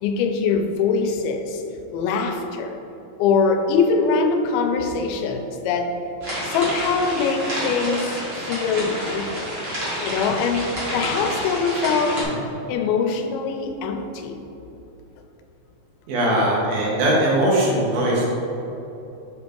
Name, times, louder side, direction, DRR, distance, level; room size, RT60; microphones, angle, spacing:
voice 1, 0.0-1.6 1.9-2.8 3.2-5.9 6.4-9.5 10.0-12.2 12.7-14.4, left 5 dB, 85° left, 5 dB, 2.5 m, -23 dB
sound 1, 6.2-12.2, equal, 50° right, 1.0 m, -29 dB
voice 2, 16.1-18.2, right 1 dB, 75° right, -5 dB, 3.1 m, -20 dB
7.1 x 4.3 x 4.6 m, 3.0 s
omnidirectional pair, 4.3 m